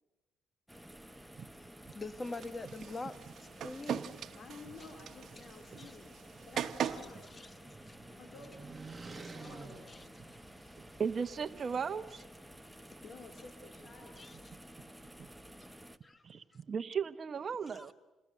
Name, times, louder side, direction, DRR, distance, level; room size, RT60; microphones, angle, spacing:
sound 1, 0.7-16.0, equal, ahead, 1.2 m, -53 dB
voice 1, 1.9-4.2 5.8-6.0 6.8-6.9 7.3-7.5 7.8-8.0 9.9-10.4 12.9-13.0 14.2-14.6 15.6-15.7 16.0-16.2 17.7-17.9, left 3 dB, 25° left, 1.5 m, -45 dB
sound 2, 2.2-7.2, right 8 dB, 65° right, 1.2 m, -41 dB
voice 2, 4.3-6.2 6.5-7.8 8.1-8.7 9.1-10.2 13.0-14.3, left 4 dB, 55° left, 3.2 m, -53 dB
sound 3, 6.9-11.1, right 3 dB, 25° right, 1.7 m, -51 dB
voice 3, 11.0-12.2 15.2-15.3 16.2-17.9, right 6 dB, 45° right, 1.0 m, -36 dB
28.0 x 20.5 x 6.8 m
cardioid pair, 90°, 0 cm